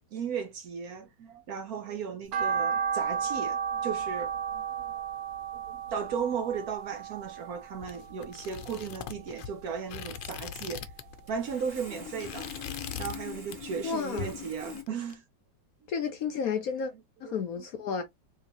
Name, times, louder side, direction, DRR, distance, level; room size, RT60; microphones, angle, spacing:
voice 1, 0.1-5.1 5.5-10.9 11.3-15.2 17.2-17.4, right 6 dB, 65° right, 1.0 m, -36 dB
sound 1, 2.3-8.6 9.0-10.1 10.5-11.9 12.3-12.4 12.9-13.0 13.2-13.3, right 7 dB, 80° right, 1.5 m, -33 dB
sound 2, 7.8-11.2 11.5-11.7 12.0-13.2 13.5-13.9 14.2-15.1, left 9 dB, 85° left, 1.4 m, -41 dB
Sawing, 11.3-14.8, left 5 dB, 20° right, 1.9 m, -43 dB
voice 2, 13.8-14.3 15.9-16.9 17.2-18.0, left 6 dB, 65° left, 0.9 m, -32 dB
3.8 x 3.2 x 2.9 m
omnidirectional pair, 2.0 m